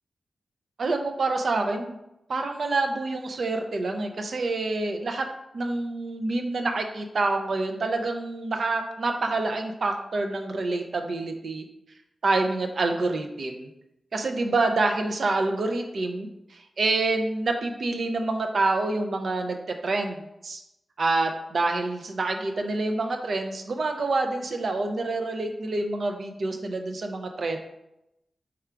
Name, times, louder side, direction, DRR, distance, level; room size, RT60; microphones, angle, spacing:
voice 1, 0.8-2.0 2.3-5.3 5.5-11.6 12.2-13.7 14.1-19.6 19.8-20.6 21.0-27.6, right 3 dB, 50° right, 4 dB, 0.4 m, -27 dB
4.8 x 2.3 x 4.4 m, 0.87 s
wide cardioid pair, 175°, 0 cm